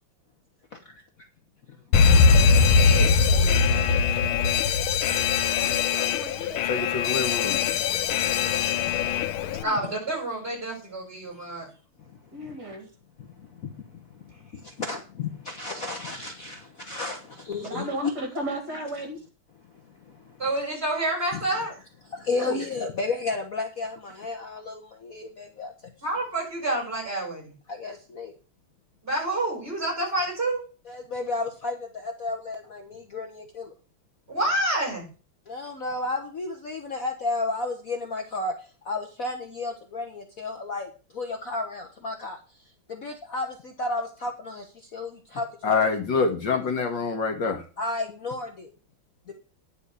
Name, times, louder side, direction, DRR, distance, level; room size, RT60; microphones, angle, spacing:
voice 1, 0.7-1.0 1.7-2.3 12.0-12.6 13.2-18.1 19.6-20.4 21.3-21.5 22.0-25.9 27.7-28.3 30.8-33.7 35.5-45.5 47.8-48.7 49.3-49.4, left 3 dB, 45° left, 3 dB, 1.4 m, -34 dB
Alarm, 1.9-9.6, left 5 dB, 90° left, 1.6 m, -21 dB
voice 2, 2.6-3.8 9.6-11.7 20.4-21.7 26.0-27.5 29.0-30.6 34.3-35.0, right 1 dB, 25° right, -1 dB, 6.5 m, -28 dB
voice 3, 5.4-6.6 9.0-9.9 12.3-12.9 17.6-19.2 22.5-22.6, right 1 dB, 50° right, 3 dB, 3.8 m, -35 dB
voice 4, 6.6-7.6 45.6-47.7, left 4 dB, 65° left, 6 dB, 1.9 m, -26 dB
10.0 x 5.3 x 8.1 m, 0.35 s
omnidirectional pair, 2.3 m